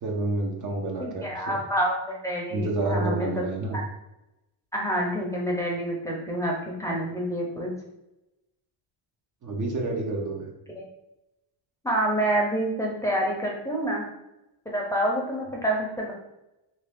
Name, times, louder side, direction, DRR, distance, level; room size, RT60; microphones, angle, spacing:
voice 1, 0.0-1.6 2.5-3.8 9.4-10.5, right 2 dB, 40° right, 0 dB, 0.8 m, -29 dB
voice 2, 1.0-3.5 3.7-3.8 4.7-7.7 10.7-10.8 11.8-14.1 14.6-16.1, right 1 dB, 5° left, -3 dB, 0.7 m, -27 dB
2.8 x 2.8 x 3.5 m, 0.92 s
cardioid pair, 95°, 49 cm